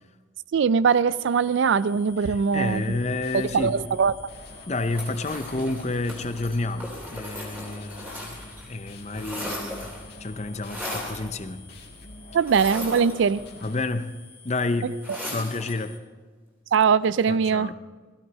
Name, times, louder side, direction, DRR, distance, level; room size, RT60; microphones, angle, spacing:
voice 1, 0.5-2.8 3.3-4.1 12.3-13.4 16.7-17.7, right 6 dB, 65° right, 0.3 m, -21 dB
sound 1, 1.2-16.0, left 5 dB, 10° left, 1.0 m, -51 dB
voice 2, 2.2-3.8 4.7-8.4 8.7-9.9 10.2-11.7 13.6-14.1 14.4-15.0 15.2-16.0 17.3-17.7, left 2 dB, 35° left, 0.7 m, -30 dB
sound 2, 2.5-13.8, left 1 dB, 50° left, 1.9 m, -46 dB
sound 3, 4.9-8.7 8.9-10.1 10.6-11.3 12.4-13.6 15.0-15.8, left 1 dB, 10° right, 3.1 m, -37 dB
17.5 x 15.0 x 4.1 m
head